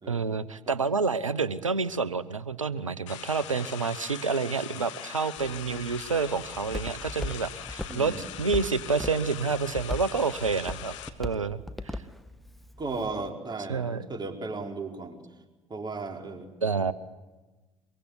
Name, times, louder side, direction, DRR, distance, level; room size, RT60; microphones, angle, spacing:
voice 1, 0.1-12.0 13.7-14.1 16.6-16.9, right 4 dB, 90° right, 18 dB, 0.9 m, -29 dB
sound 1, 3.1-11.1, left 11 dB, 70° left, 1.8 m, -42 dB
Walk footsteps, 5.4-13.3, left 1 dB, ahead, 1.7 m, -40 dB
voice 2, 7.9-8.3 12.8-15.2 15.7-16.5, right 3 dB, 25° right, 3 dB, 4.5 m, -36 dB
24.0 x 23.0 x 9.6 m, 1.2 s
figure-of-eight pair, 60°, 16 cm